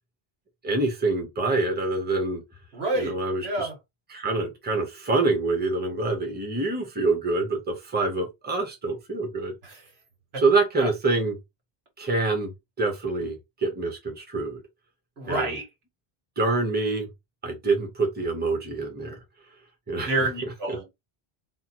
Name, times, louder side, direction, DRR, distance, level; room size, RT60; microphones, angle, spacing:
voice 1, 0.6-2.4 2.9-3.7 4.1-9.5 10.4-11.4 12.0-12.5 12.8-14.6 15.3-15.6 16.4-17.1 17.4-19.2 19.9-20.1 20.4-20.8, right 3 dB, 10° right, 0.8 m, -26 dB
voice 2, 2.7-3.8 9.6-9.8 10.3-10.4 10.8-10.9 15.2-15.7 20.0-20.8, right 2 dB, 80° right, 1.6 m, -28 dB
3.0 x 2.1 x 4.2 m
omnidirectional pair, 1.0 m